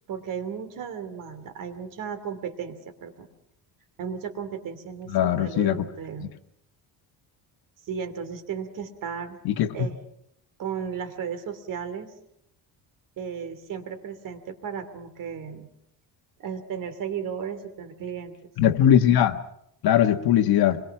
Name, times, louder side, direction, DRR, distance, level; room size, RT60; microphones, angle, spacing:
voice 1, 0.1-3.3 4.0-6.3 7.9-9.4 9.7-10.0 10.6-12.1 13.2-15.7 16.4-18.3, right 7 dB, 50° right, 9 dB, 2.7 m, -35 dB
voice 2, 5.1-5.8 9.4-9.9 18.6-19.4 19.8-20.8, left 10 dB, 65° left, 8 dB, 1.5 m, -20 dB
25.0 x 22.5 x 5.9 m, 0.74 s
cardioid pair, 170°, 40 cm